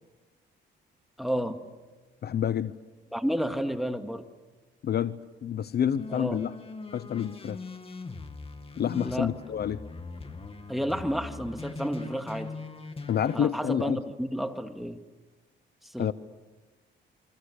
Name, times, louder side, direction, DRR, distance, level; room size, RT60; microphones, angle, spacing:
voice 1, 1.2-1.6 3.1-4.3 6.1-6.4 8.9-9.3 10.7-12.6 13.3-15.0 15.8-16.1, equal, ahead, 6 dB, 2.2 m, -31 dB
voice 2, 2.2-2.7 4.8-5.2 5.4-6.5 6.9-7.6 8.8-9.8 13.1-14.0 16.0-16.1, left 9 dB, 55° left, 15 dB, 0.8 m, -28 dB
sound 1, 6.0-13.4, left 3 dB, 30° left, 2.5 m, -41 dB
29.5 x 23.5 x 6.7 m, 1.2 s
cardioid pair, 90°, 20 cm